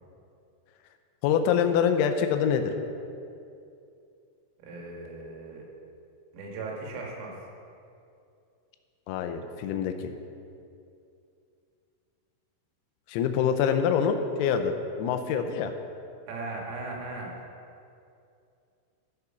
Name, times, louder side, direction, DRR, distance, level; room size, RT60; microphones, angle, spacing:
voice 1, 1.2-2.7 9.1-10.1 13.1-15.7, left 7 dB, 90° left, 7 dB, 3.5 m, -25 dB
voice 2, 4.6-5.7 6.3-7.3 16.3-17.3, right 3 dB, 80° right, -1 dB, 4.4 m, -37 dB
15.5 x 6.7 x 5.7 m, 2.5 s
omnidirectional pair, 5.9 m